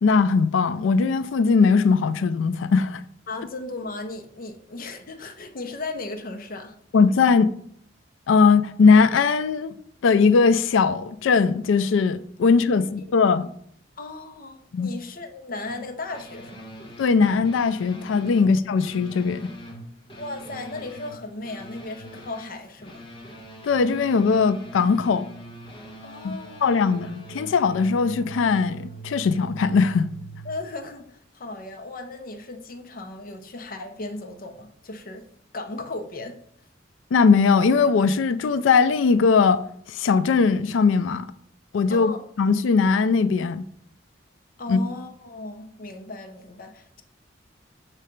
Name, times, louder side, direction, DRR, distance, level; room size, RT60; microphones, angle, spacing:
voice 1, 0.0-3.0 6.9-7.5 8.3-9.7 10.0-13.5 14.7-14.9 17.0-19.5 23.6-25.3 26.2-30.1 37.1-39.6 39.9-41.3 41.7-42.1 42.4-43.7 44.7-44.8, left 5 dB, 80° left, 0.4 m, -20 dB
voice 2, 3.3-6.7 12.7-13.1 14.0-16.7 18.4-18.5 20.2-23.0 26.0-27.0 30.4-35.2 35.5-36.4 41.9-42.2 44.6-47.0, left 2 dB, 50° left, 0.7 m, -36 dB
sound 1, 15.6-30.6, right 1 dB, 30° left, 1.1 m, -42 dB
6.6 x 3.2 x 5.1 m
head